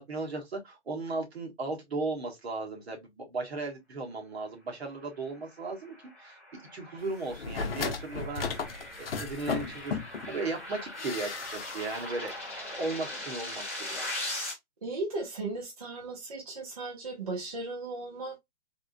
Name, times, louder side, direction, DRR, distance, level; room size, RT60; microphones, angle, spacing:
voice 1, 0.0-6.4 6.7-8.7 9.0-10.0 10.3-12.3 12.7-14.0, right 3 dB, 65° right, 1.3 m, -36 dB
sound 1, 5.7-14.5, left 1 dB, 10° left, 0.5 m, -40 dB
sound 2, 7.3-10.3 11.0-12.0 12.3-12.4, left 5 dB, 60° left, 0.7 m, -35 dB
voice 2, 14.8-18.4, right 2 dB, 35° right, 0.8 m, -36 dB
3.5 x 2.4 x 2.5 m
hypercardioid pair, 175°, 34 cm